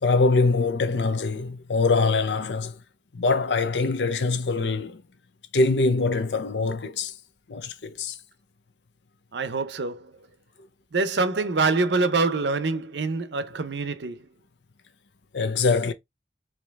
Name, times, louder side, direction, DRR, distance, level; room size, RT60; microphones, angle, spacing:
voice 1, 0.0-2.8 3.1-5.0 5.5-7.1 7.5-8.2 15.3-15.9, left 3 dB, 90° left, 0.7 m, -23 dB
voice 2, 9.3-10.2 10.9-14.3, right 3 dB, 90° right, 0.7 m, -25 dB
4.8 x 2.9 x 3.5 m
head